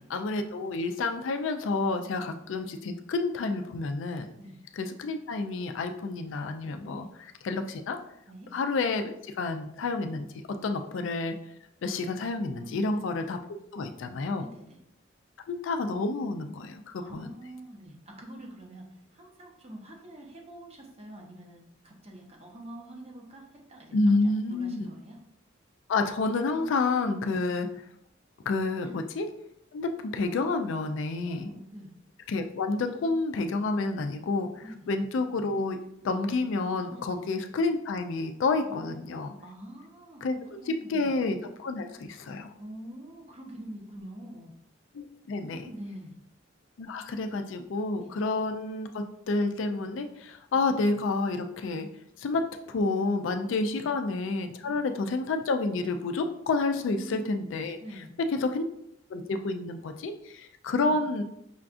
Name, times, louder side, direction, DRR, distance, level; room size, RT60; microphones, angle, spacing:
voice 1, 0.1-4.3 4.8-8.0 8.5-10.3 10.6-11.3 11.8-13.4 13.7-14.4 15.5-17.3 23.9-24.9 25.9-27.7 28.5-29.3 29.7-31.5 32.3-35.8 36.0-39.3 40.2-42.5 44.9-45.7 46.8-51.9 52.2-58.0 58.3-58.6 59.1-61.2, left 3 dB, 70° left, 6 dB, 0.4 m, -29 dB
voice 2, 12.6-12.9 14.4-14.8 17.0-18.9 19.1-25.2 27.2-27.4 28.8-29.0 31.2-31.9 34.6-34.8 36.9-37.2 38.7-39.0 39.4-40.2 40.5-41.1 42.6-44.5 45.3-46.2 48.0-48.1 50.5-50.6 53.7-53.9 54.6-54.8 56.8-57.3 57.8-58.1 60.9-61.0, right 1 dB, 30° right, 0 dB, 0.7 m, -45 dB
5.7 x 2.3 x 2.5 m, 0.77 s
head